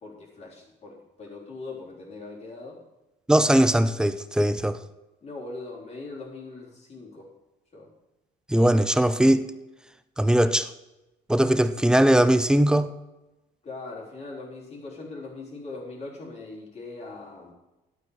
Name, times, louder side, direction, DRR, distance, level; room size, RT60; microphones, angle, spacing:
voice 1, 0.0-2.8 5.2-7.3 7.7-7.9 13.6-17.5, left 3 dB, 40° left, 3.7 m, -40 dB
voice 2, 3.3-4.8 8.5-9.5 10.2-10.7 11.3-12.9, right 1 dB, 5° right, 0.6 m, -20 dB
11.5 x 8.6 x 4.9 m
cardioid pair, 110°, 17 cm